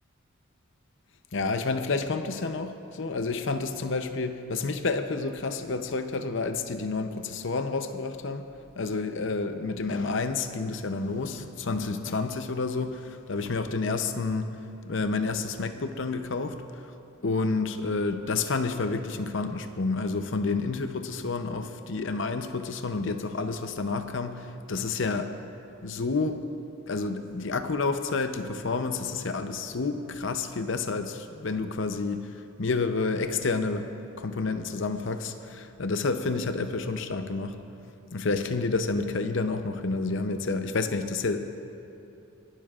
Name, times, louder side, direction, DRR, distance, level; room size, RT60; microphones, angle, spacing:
voice 1, 1.3-8.5 8.8-14.5 14.8-16.6 16.8-16.9 17.2-25.3 25.8-26.4 26.9-33.9 34.2-37.6 38.1-41.4, left 3 dB, 60° left, 8 dB, 0.7 m, -29 dB
25.5 x 12.0 x 2.5 m, 2.8 s
head